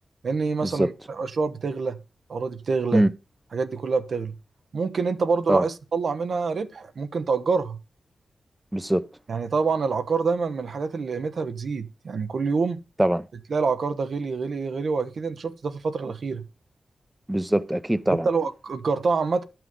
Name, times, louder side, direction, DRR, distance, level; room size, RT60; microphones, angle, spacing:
voice 1, 0.2-2.0 2.3-3.1 3.5-4.3 4.7-7.8 9.3-12.8 13.5-16.4 18.1-19.4, right 4 dB, 75° right, 1.0 m, -26 dB
voice 2, 8.7-9.0 13.0-13.2 17.3-18.3, right 1 dB, 10° right, 0.7 m, -22 dB
11.0 x 5.9 x 5.2 m
cardioid pair, 55°, 0 cm